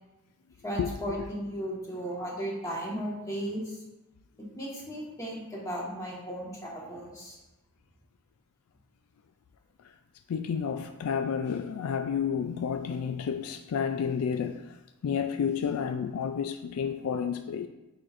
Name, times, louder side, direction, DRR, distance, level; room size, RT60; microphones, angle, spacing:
voice 1, 0.6-3.8 4.5-7.4, equal, 15° left, 1.4 m, -35 dB
voice 2, 10.3-14.6 15.0-17.7, left 7 dB, 90° left, 0.4 m, -30 dB
8.8 x 4.3 x 2.5 m
head